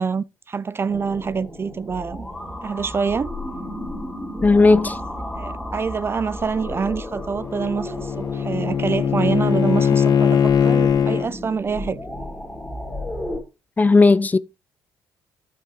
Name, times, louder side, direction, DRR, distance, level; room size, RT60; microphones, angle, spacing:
voice 1, 0.0-2.3 2.6-3.3 5.4-12.0, right 5 dB, 30° right, 0.4 m, -26 dB
sound 1, 0.9-13.4, left 1 dB, ahead, 3.4 m, -34 dB
voice 2, 4.4-5.0 13.8-14.4, left 3 dB, 20° left, 0.5 m, -14 dB
Bowed string instrument, 7.2-11.3, left 7 dB, 60° left, 1.0 m, -20 dB
8.7 x 7.5 x 3.1 m
cardioid pair, 80°, 8 cm